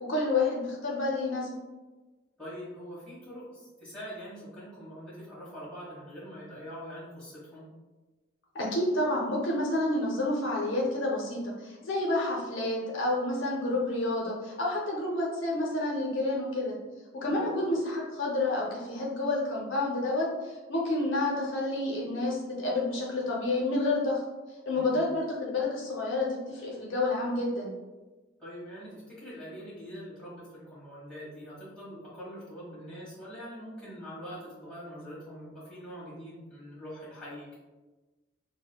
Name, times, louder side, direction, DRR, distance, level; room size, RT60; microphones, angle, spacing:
voice 1, 0.0-1.5 8.5-16.7 17.1-24.2 24.7-27.7, left 2 dB, 65° left, -3 dB, 0.7 m, -29 dB
voice 2, 2.4-7.7 17.2-17.6 24.7-25.1 28.4-37.5, equal, 5° left, -9 dB, 1.4 m, -44 dB
6.2 x 2.1 x 2.3 m, 1.2 s
head